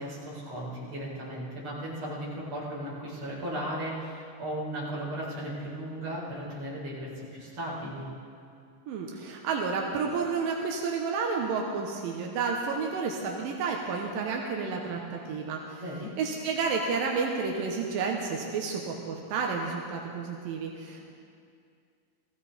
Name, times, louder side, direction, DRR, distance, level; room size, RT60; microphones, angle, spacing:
voice 1, 0.0-8.1 15.8-16.1, right 1 dB, 35° right, -8 dB, 5.2 m, -36 dB
voice 2, 8.9-15.8 16.2-21.0, right 5 dB, 85° right, 0 dB, 2.7 m, -31 dB
19.0 x 15.0 x 4.2 m, 2.4 s
omnidirectional pair, 4.0 m